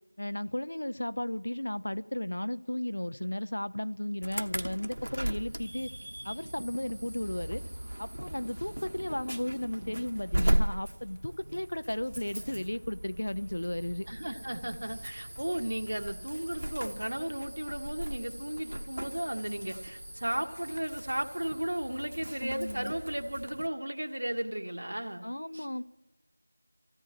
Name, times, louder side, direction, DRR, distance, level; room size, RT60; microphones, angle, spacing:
voice 1, 0.2-5.9 6.2-7.6 8.0-14.1 22.4-22.9 25.2-25.8, left 1 dB, 55° left, 14 dB, 0.7 m, -34 dB
Insect / Alarm, 4.2-23.7, right 1 dB, 85° right, 1.0 m, -37 dB
voice 2, 14.1-25.2 25.5-25.7, right 1 dB, 65° right, 5 dB, 1.7 m, -35 dB
28.0 x 16.5 x 3.0 m, 1.1 s
figure-of-eight pair, 180°, 0 cm